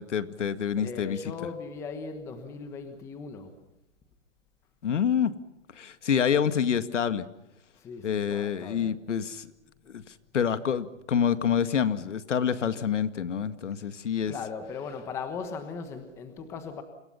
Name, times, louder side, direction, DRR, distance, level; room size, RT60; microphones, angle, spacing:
voice 1, 0.0-1.2 4.8-5.3 5.8-7.3 8.0-9.5 9.9-10.0 10.3-14.3, left 8 dB, 70° left, 12 dB, 2.0 m, -27 dB
voice 2, 0.8-3.5 7.8-8.9 14.3-16.8, left 5 dB, 5° left, 8 dB, 1.2 m, -38 dB
29.5 x 26.5 x 5.6 m, 0.86 s
hypercardioid pair, 170°, 37 cm